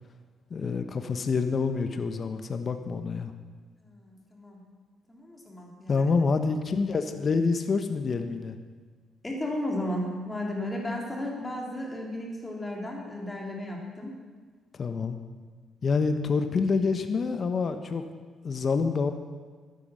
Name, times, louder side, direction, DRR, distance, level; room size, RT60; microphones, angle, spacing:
voice 1, 0.5-3.3 5.9-8.6 14.7-15.2 15.8-18.0 18.4-19.1, left 4 dB, 45° left, 8 dB, 1.0 m, -27 dB
voice 2, 3.8-4.6 5.1-6.1 9.2-14.2, left 1 dB, 15° left, -1 dB, 3.4 m, -34 dB
12.0 x 9.9 x 6.4 m, 1.5 s
cardioid pair, 90°, 0 cm